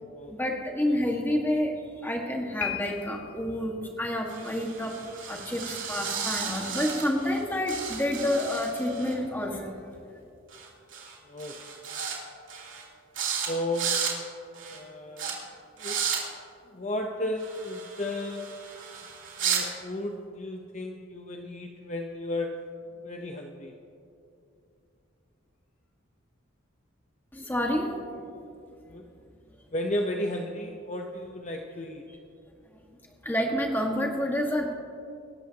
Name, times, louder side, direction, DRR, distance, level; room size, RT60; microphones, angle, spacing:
voice 1, 0.3-1.7 2.0-3.7 4.0-4.9 5.3-5.6 5.9-9.7 27.4-27.9 33.2-34.7, left 1 dB, 10° left, 0 dB, 1.7 m, -28 dB
Piano, 2.6-3.6, left 10 dB, 80° left, 1.1 m, -35 dB
sound 1, 4.3-7.4 7.7-9.1 10.5-10.7 10.9-11.1 11.4-12.2 12.5-12.8 13.1-13.5 13.7-14.1 14.5-14.8 15.2-15.3 15.8-16.2 17.4-19.6, right 7 dB, 65° right, 3.2 m, -33 dB
voice 2, 11.2-11.8 13.5-13.9 14.7-15.3 15.7-16.0 16.7-18.5 19.4-22.5 23.0-23.7 28.9-29.0 29.7-32.0, left 1 dB, 35° left, 2 dB, 0.8 m, -34 dB
25.5 x 13.5 x 2.9 m, 2.6 s
head